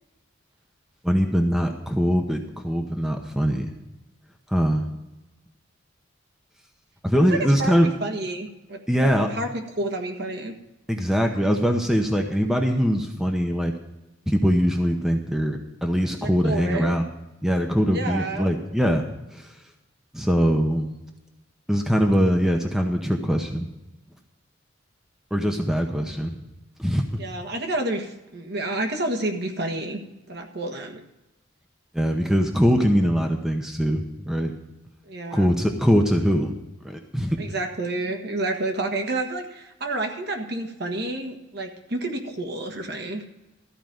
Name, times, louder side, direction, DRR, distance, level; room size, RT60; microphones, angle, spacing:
voice 1, 1.0-3.7 4.5-4.9 7.0-7.9 8.9-9.3 10.9-13.7 14.3-17.1 17.4-19.0 19.3-19.5 20.1-20.9 21.7-23.7 25.3-26.4 26.8-27.2 31.9-34.5 35.3-36.5 36.8-37.4, equal, ahead, 3 dB, 0.8 m, -22 dB
voice 2, 7.3-9.5 9.8-10.5 16.2-17.0 17.9-18.5 27.2-30.0 30.3-31.0 35.1-35.5 37.4-43.2, right 2 dB, 55° right, 3 dB, 1.5 m, -29 dB
14.0 x 5.0 x 9.1 m, 1.0 s
head